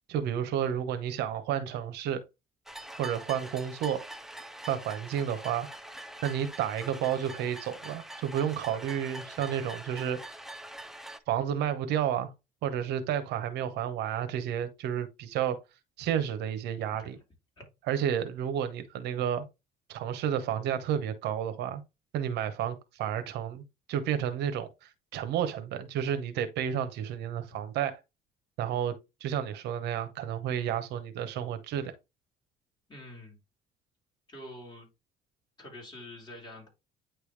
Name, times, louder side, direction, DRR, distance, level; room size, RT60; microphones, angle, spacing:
voice 1, 0.1-2.2 3.0-4.0 4.7-5.7 6.2-10.4 11.3-12.3 12.6-15.6 16.0-17.2 17.9-19.4 19.9-21.8 22.1-23.6 23.9-28.0 28.6-28.9 29.2-31.9, right 9 dB, 85° right, 0.9 m, -31 dB
sound 1, 2.7-11.2, right 1 dB, ahead, 0.6 m, -44 dB
voice 2, 32.9-33.4 34.3-34.9 35.6-36.7, left 1 dB, 25° left, 3.7 m, -46 dB
9.1 x 3.4 x 3.2 m
cardioid pair, 110°, 17 cm